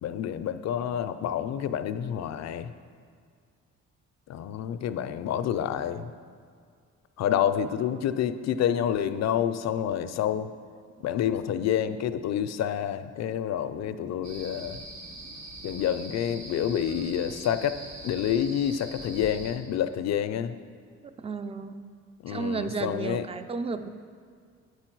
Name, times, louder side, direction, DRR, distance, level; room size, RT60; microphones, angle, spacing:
voice 1, 0.0-2.7 4.3-6.1 7.2-10.5 11.0-14.8 15.6-17.8 18.0-20.6 22.2-23.3, left 9 dB, 60° left, 10 dB, 0.4 m, -28 dB
sound 1, 14.2-19.5, right 2 dB, 70° right, 1.5 m, -43 dB
voice 2, 21.2-21.8 22.3-23.9, right 4 dB, 20° right, 10 dB, 0.4 m, -32 dB
8.3 x 4.7 x 4.5 m, 2.1 s
cardioid pair, 90°, 30 cm